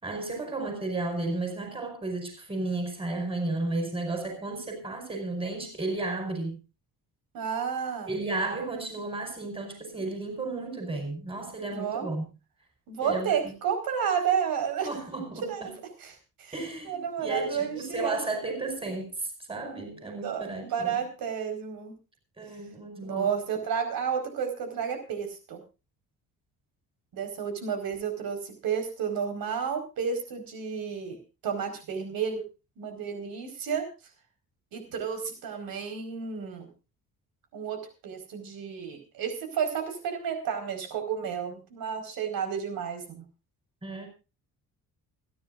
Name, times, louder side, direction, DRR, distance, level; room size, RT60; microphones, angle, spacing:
voice 1, 0.0-6.6 8.1-12.2 13.0-13.5 14.8-15.8 16.5-21.0 22.4-23.3 43.8-44.1, right 2 dB, 15° right, 4.8 m, -33 dB
voice 2, 7.3-8.1 11.7-12.1 12.9-14.9 15.5-15.6 16.0-16.1 16.4-16.5 16.8-18.2 20.2-21.9 23.0-25.6 27.1-31.2 31.4-32.4 32.8-33.8 34.7-36.7 37.5-43.2, right 7 dB, 80° right, 4.9 m, -31 dB
29.0 x 10.5 x 2.6 m
cardioid pair, 175°, 35 cm